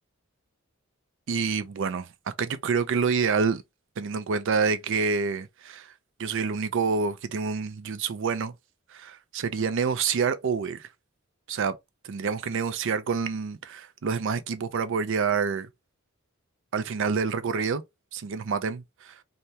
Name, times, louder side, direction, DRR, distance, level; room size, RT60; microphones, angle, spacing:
voice 1, 1.3-2.1 2.4-3.6 4.0-5.9 6.2-8.5 8.9-10.9 11.5-11.8 12.1-15.7 16.7-17.8 18.1-19.1, right 5 dB, 65° right, 0.4 m, -27 dB
3.3 x 2.2 x 2.7 m
head